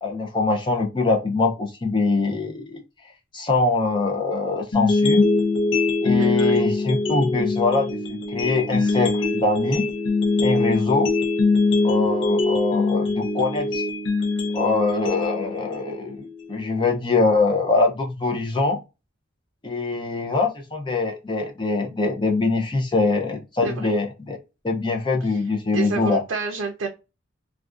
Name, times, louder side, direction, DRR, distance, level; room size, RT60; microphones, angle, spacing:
voice 1, 0.0-2.8 3.3-5.3 6.0-9.9 10.4-11.1 11.8-13.8 14.5-18.8 19.6-24.4 24.6-26.2, left 3 dB, 25° left, 2 dB, 0.4 m, -23 dB
sound 1, 4.7-16.7, left 3 dB, 75° left, 0.6 m, -23 dB
voice 2, 6.2-6.6 23.6-23.9 25.3-25.4 25.7-26.9, right 4 dB, 75° right, 2 dB, 0.5 m, -29 dB
2.4 x 2.2 x 2.3 m, 0.28 s
head